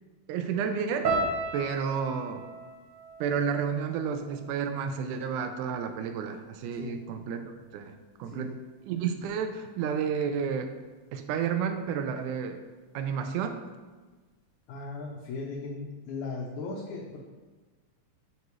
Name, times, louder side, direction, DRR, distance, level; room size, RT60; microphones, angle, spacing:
voice 1, 0.3-1.2 1.5-2.5 3.2-7.4 7.7-8.5 8.9-10.7 11.1-12.6 12.9-13.6, right 7 dB, 80° right, 7 dB, 2.0 m, -31 dB
sound 1, 1.0-5.3 5.5-6.3 6.9-7.1, right 3 dB, 65° right, 1.1 m, -36 dB
voice 2, 14.7-17.2, left 3 dB, 75° left, -3 dB, 2.1 m, -37 dB
9.2 x 4.0 x 3.1 m, 1.3 s
omnidirectional pair, 3.6 m